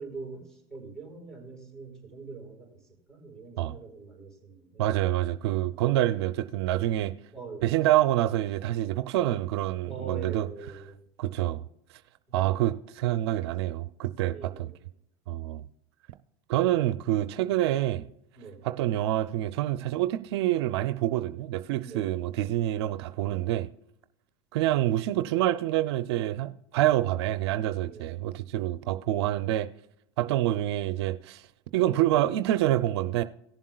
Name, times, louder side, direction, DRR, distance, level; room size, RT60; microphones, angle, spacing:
voice 1, 0.0-5.0 7.3-7.8 9.9-11.0 12.3-12.6 14.3-14.8 18.4-18.6 21.8-22.2 27.8-28.2, right 4 dB, 5° left, 4.2 m, -43 dB
voice 2, 4.8-7.1 7.6-10.5 11.2-11.6 12.3-14.5 15.3-15.6 16.5-18.1 18.6-23.7 24.5-29.7 30.2-31.4 31.7-33.2, right 14 dB, 75° right, 0.6 m, -27 dB
18.0 x 7.3 x 2.3 m
hypercardioid pair, 105°, 14 cm